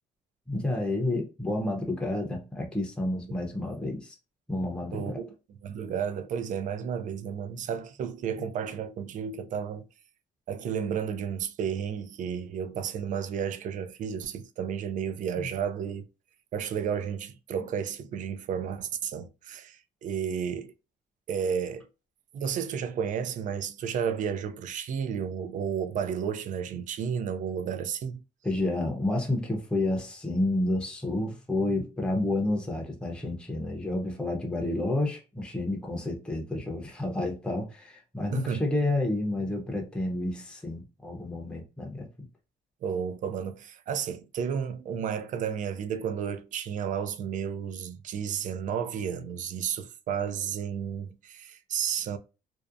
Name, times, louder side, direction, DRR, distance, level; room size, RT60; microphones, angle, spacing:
voice 1, 0.5-4.1 4.5-5.2 15.4-15.5 28.4-42.1, left 2 dB, 5° left, 0.7 m, -30 dB
voice 2, 4.9-5.3 5.6-9.9 10.5-16.1 16.5-20.7 21.3-21.9 22.3-28.2 38.3-38.6 42.8-52.2, right 7 dB, 50° right, 0.4 m, -32 dB
2.7 x 2.1 x 2.4 m
cardioid pair, 110°, 17 cm